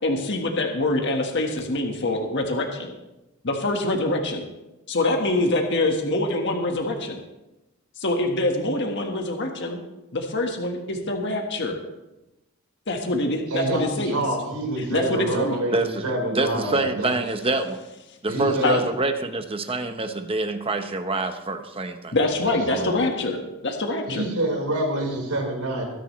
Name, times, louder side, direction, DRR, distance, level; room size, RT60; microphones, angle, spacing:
voice 1, 0.0-2.9 3.4-4.4 4.9-7.2 8.0-9.8 10.1-11.8 12.9-14.2 14.9-15.6 18.6-18.8 22.1-23.4 23.6-24.2, left 2 dB, 55° left, 2 dB, 1.5 m, -25 dB
voice 2, 13.5-17.1 18.3-18.8 22.4-23.0 24.1-25.8, right 1 dB, 85° right, 0 dB, 4.4 m, -27 dB
voice 3, 15.7-16.0 16.3-17.8 18.2-22.2, right 2 dB, 25° right, 7 dB, 1.0 m, -26 dB
22.5 x 10.0 x 3.2 m, 0.98 s
head